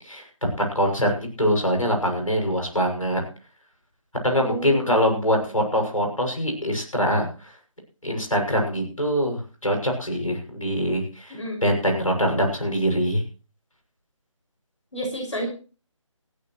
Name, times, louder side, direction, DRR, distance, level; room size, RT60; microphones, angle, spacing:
voice 1, 0.0-3.2 4.2-7.5 8.0-13.2, equal, 85° left, 2 dB, 6.6 m, -24 dB
voice 2, 4.4-4.9 11.3-11.6 14.9-15.5, right 1 dB, 65° left, 2 dB, 5.8 m, -31 dB
17.5 x 15.5 x 3.1 m, 0.36 s
figure-of-eight pair, 155°, 17 cm